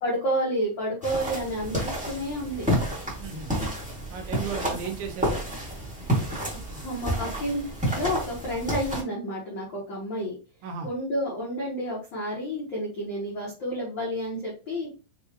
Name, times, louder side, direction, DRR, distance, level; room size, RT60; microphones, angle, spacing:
voice 1, 0.0-2.7 6.5-10.3 10.8-14.9, equal, 75° left, -5 dB, 1.1 m, -30 dB
sound 1, 1.0-9.0, equal, 5° right, 0.6 m, -30 dB
voice 2, 3.2-3.5 4.1-5.4 6.7-6.9 10.6-10.9, right 6 dB, 80° right, 3 dB, 2.5 m, -35 dB
6.4 x 2.3 x 2.8 m, 0.34 s
omnidirectional pair, 4.0 m